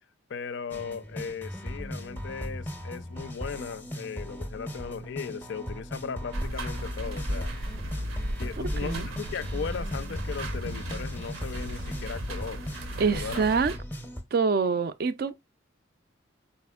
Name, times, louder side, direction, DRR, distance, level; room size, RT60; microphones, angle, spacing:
voice 1, 0.3-7.6 8.4-12.6 13.1-13.6, left 6 dB, 55° left, 0.3 m, -37 dB
sound 1, 0.7-14.2, equal, 10° left, 0.5 m, -38 dB
sound 2, 6.3-13.8, equal, 80° right, 0.7 m, -35 dB
voice 2, 8.6-9.1 13.0-13.7 14.3-15.3, right 5 dB, 50° right, 0.3 m, -26 dB
4.2 x 4.1 x 2.2 m
head